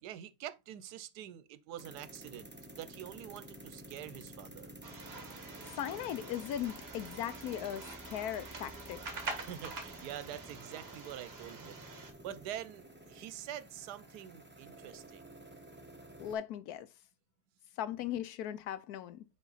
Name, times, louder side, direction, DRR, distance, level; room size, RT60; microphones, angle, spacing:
voice 1, 0.0-2.5 2.8-4.7 9.5-15.2, right 11 dB, 80° right, 1.2 m, -46 dB
sound 1, 1.8-16.3, right 1 dB, 10° right, 0.7 m, -51 dB
sound 2, 4.8-12.1, right 3 dB, 40° right, 1.4 m, -46 dB
voice 2, 5.6-9.3 16.2-16.9 17.8-19.2, left 10 dB, 75° left, 1.1 m, -38 dB
5.5 x 4.8 x 3.9 m
omnidirectional pair, 1.7 m